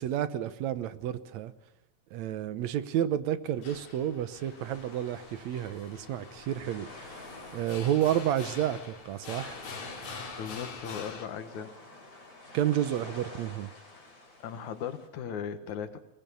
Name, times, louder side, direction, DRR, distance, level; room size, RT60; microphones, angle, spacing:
voice 1, 0.0-1.5 2.1-7.2 7.5-9.6 12.5-13.7, right 11 dB, 75° right, 2.1 m, -30 dB
sound 1, 3.5-11.3, left 4 dB, 60° left, 3.5 m, -45 dB
sound 2, 4.4-15.1, left 2 dB, 30° left, 5.0 m, -49 dB
voice 2, 10.4-11.7 14.0-14.1 14.4-16.0, left 7 dB, 85° left, 2.8 m, -38 dB
21.5 x 19.5 x 7.0 m
omnidirectional pair, 3.3 m